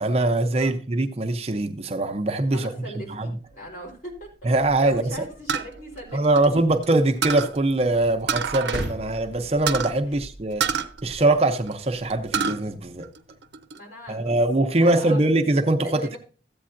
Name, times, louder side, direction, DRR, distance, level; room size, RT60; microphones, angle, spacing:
voice 1, 0.0-3.4 4.4-5.2 6.1-13.1 14.1-16.2, right 2 dB, 35° right, 0.6 m, -22 dB
voice 2, 2.5-6.4 13.7-14.4 14.7-15.2 15.8-16.2, equal, 45° left, 3.7 m, -40 dB
industrial skipbin open close, 2.7-13.6, right 1 dB, 80° left, 6.3 m, -43 dB
sound 1, 5.5-6.8 7.2-7.6 8.3-8.9 9.2-9.3 9.7-9.9 10.6-11.7 12.1-12.6 13.0-13.8, right 6 dB, 70° right, 0.7 m, -27 dB
14.0 x 8.4 x 2.5 m
head